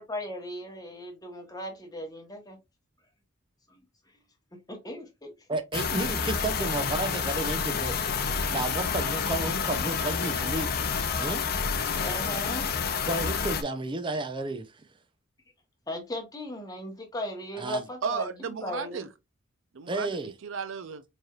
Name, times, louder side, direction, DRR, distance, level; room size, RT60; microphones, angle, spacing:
voice 1, 0.0-2.6 3.7-3.8 4.7-5.3 12.0-12.7 15.9-18.3 18.6-19.0, left 1 dB, 20° left, 1.1 m, -37 dB
voice 2, 5.5-8.0 8.4-10.7 11.2-11.4 13.1-14.9 17.6-17.8 19.9-20.3, right 2 dB, 25° right, 0.5 m, -32 dB
sound 1, 5.7-13.6, left 6 dB, 50° left, 0.5 m, -29 dB
voice 3, 18.0-19.1 19.7-21.0, right 5 dB, 70° right, 0.5 m, -34 dB
4.2 x 3.2 x 2.3 m
head